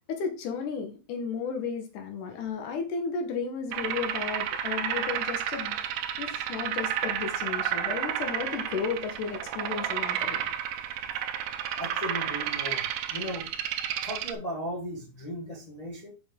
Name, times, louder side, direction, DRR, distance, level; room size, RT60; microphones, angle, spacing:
voice 1, 0.0-5.8 6.2-10.5, left 5 dB, 80° left, 2.8 m, -34 dB
sound 1, 3.7-14.3, right 10 dB, 85° right, 2.2 m, -31 dB
voice 2, 11.8-13.5 14.0-16.1, equal, 30° left, 0.6 m, -36 dB
6.7 x 5.1 x 3.7 m
omnidirectional pair, 3.6 m